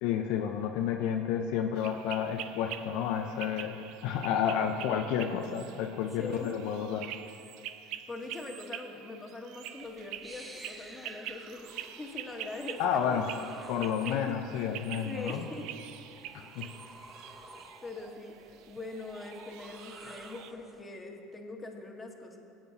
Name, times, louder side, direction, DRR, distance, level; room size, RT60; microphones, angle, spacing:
voice 1, 0.0-7.1 12.8-13.3 13.7-15.5 16.3-16.7, left 8 dB, 65° left, 3 dB, 0.6 m, -31 dB
sound 1, 1.8-20.5, right 11 dB, 65° right, 0.5 m, -45 dB
voice 2, 6.2-6.5 7.9-12.8 13.1-13.2 14.0-14.7 15.0-15.7 17.8-18.3 18.7-22.4, left 2 dB, 20° left, 1 dB, 1.6 m, -42 dB
sound 2, 9.8-20.8, right 1 dB, 10° right, 1.2 m, -52 dB
18.0 x 8.7 x 2.8 m, 2.6 s
hypercardioid pair, 80°, 0 cm